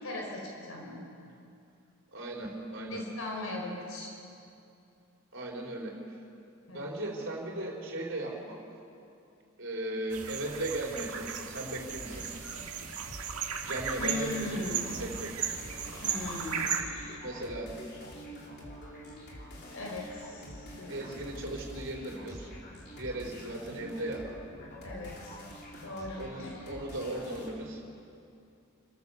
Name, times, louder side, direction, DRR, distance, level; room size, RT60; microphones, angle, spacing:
voice 1, 0.0-1.0 2.9-4.1 6.7-6.9 14.0-14.9 16.0-17.2 19.7-21.0 24.8-25.3 25.8-26.5, left 2 dB, 70° left, -1 dB, 4.8 m, -39 dB
voice 2, 2.1-3.0 5.3-6.0 6.7-8.6 9.6-12.3 13.6-15.5 17.2-17.7 20.9-22.5 22.9-24.3 26.2-27.8, right 1 dB, 60° right, -1 dB, 4.2 m, -37 dB
sound 1, 10.1-16.8, right 7 dB, 85° right, 1.8 m, -36 dB
sound 2, 11.9-13.2 13.7-27.5, left 1 dB, 50° left, 3.6 m, -47 dB
28.5 x 14.0 x 7.0 m, 2.6 s
head